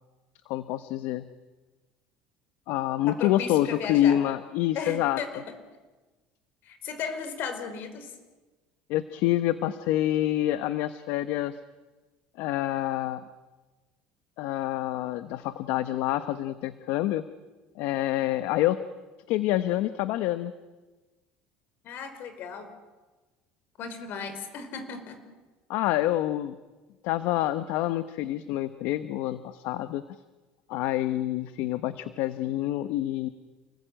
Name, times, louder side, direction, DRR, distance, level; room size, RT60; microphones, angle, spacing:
voice 1, 0.5-1.3 2.7-5.2 8.9-11.6 12.4-13.2 14.4-17.2 17.8-18.8 19.3-20.5 25.7-26.6 27.0-30.0 30.7-33.3, left 14 dB, 75° left, 12 dB, 1.1 m, -27 dB
voice 2, 3.1-4.2 4.7-5.5 6.6-8.1 21.8-22.7 23.8-25.2, left 6 dB, 60° left, 9 dB, 4.9 m, -35 dB
29.0 x 20.5 x 9.1 m, 1.2 s
cardioid pair, 115°, 4 cm